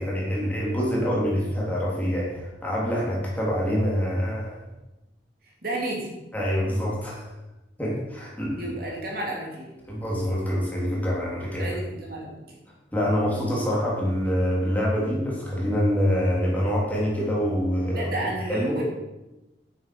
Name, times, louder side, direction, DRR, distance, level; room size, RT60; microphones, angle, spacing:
voice 1, 0.0-4.6 6.3-7.3 7.8-8.7 9.8-11.7 12.9-18.1 18.5-18.8, equal, 10° left, -5 dB, 3.6 m, -25 dB
voice 2, 5.6-6.2 8.6-9.7 11.6-12.6 17.9-18.8, right 1 dB, 55° right, -2 dB, 3.2 m, -32 dB
10.5 x 9.1 x 6.2 m, 1.0 s
head